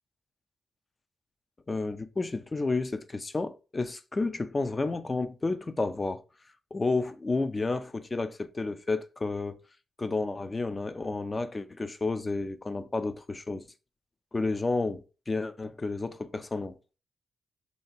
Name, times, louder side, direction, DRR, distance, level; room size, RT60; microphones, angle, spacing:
voice 1, 1.7-6.2 6.7-9.6 10.0-13.6 14.3-16.7, left 3 dB, 25° left, 0.4 m, -31 dB
3.2 x 2.8 x 4.4 m
cardioid pair, 125°, 0 cm